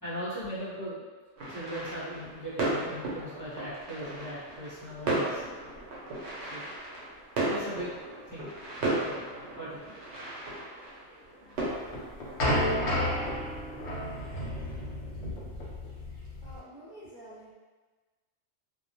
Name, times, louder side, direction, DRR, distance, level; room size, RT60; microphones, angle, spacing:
voice 1, 0.0-1.0 1.5-5.4 6.4-7.0 7.5-8.5 8.9-9.2 9.6-9.9 10.5-10.9 11.4-11.5 12.4-12.6, equal, 20° right, -13 dB, 0.7 m, -39 dB
sound 1, 1.4-14.8, right 2 dB, 75° right, 0.9 m, -36 dB
sound 2, 11.6-16.6, left 1 dB, 75° left, 1.0 m, -31 dB
voice 2, 16.1-17.5, right 1 dB, 45° left, -11 dB, 0.9 m, -49 dB
2.2 x 2.0 x 2.8 m, 1.3 s
omnidirectional pair, 1.2 m